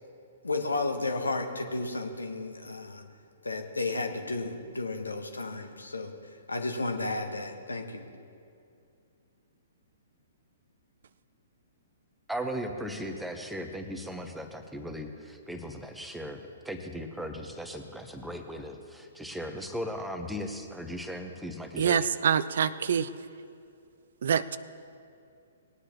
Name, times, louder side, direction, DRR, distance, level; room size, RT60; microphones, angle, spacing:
voice 1, 0.4-3.0 3.4-6.1 6.5-8.1, left 3 dB, 75° left, 6 dB, 1.2 m, -33 dB
voice 2, 12.3-16.4 16.6-22.1, equal, 5° right, 5 dB, 0.9 m, -37 dB
voice 3, 21.8-23.1 24.2-24.6, right 8 dB, 55° right, 15 dB, 0.4 m, -25 dB
19.5 x 9.8 x 3.0 m, 2.5 s
figure-of-eight pair, 120°, 0 cm